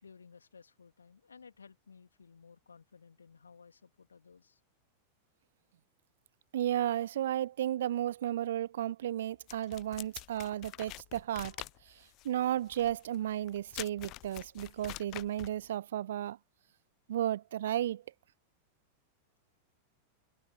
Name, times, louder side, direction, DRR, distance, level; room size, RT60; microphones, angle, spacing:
voice 1, 0.0-4.6, left 5 dB, 75° left, 2.9 m, -57 dB
voice 2, 6.5-11.5 12.2-16.4 17.1-18.0, right 12 dB, 60° right, 0.5 m, -33 dB
sound 1, 9.5-15.6, left 19 dB, 40° left, 0.7 m, -46 dB
figure-of-eight pair, 90°, 0 cm